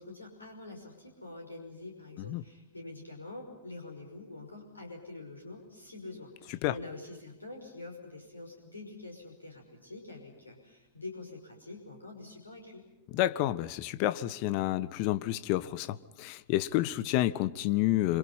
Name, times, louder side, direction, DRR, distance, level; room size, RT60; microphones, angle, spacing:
voice 1, 0.0-12.8, left 2 dB, 80° left, 2 dB, 5.6 m, -46 dB
voice 2, 13.1-18.2, left 15 dB, 45° left, 14 dB, 1.4 m, -29 dB
27.5 x 27.5 x 5.7 m, 0.98 s
figure-of-eight pair, 90°, 0 cm